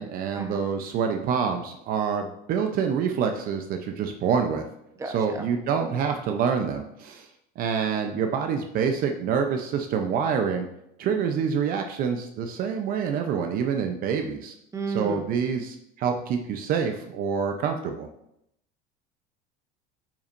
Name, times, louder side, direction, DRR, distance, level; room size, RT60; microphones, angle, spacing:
voice 1, 0.0-4.7 5.0-7.3 7.6-10.7 11.0-14.5 14.9-18.1, right 6 dB, 55° right, 5 dB, 0.7 m, -26 dB
voice 2, 5.0-5.5 14.7-15.2, right 3 dB, 15° right, 3 dB, 1.0 m, -32 dB
8.7 x 5.9 x 2.6 m, 0.78 s
cardioid pair, 125°, 18 cm